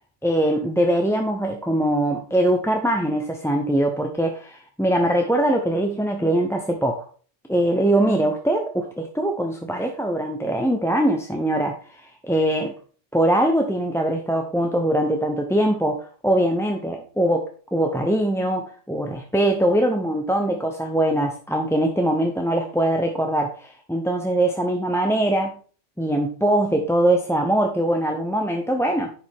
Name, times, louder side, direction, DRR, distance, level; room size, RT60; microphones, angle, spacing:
voice 1, 0.2-7.1 7.5-12.7 13.1-25.5 26.0-29.1, right 1 dB, 5° left, 3 dB, 0.7 m, -22 dB
10.0 x 5.3 x 3.7 m, 0.41 s
omnidirectional pair, 1.2 m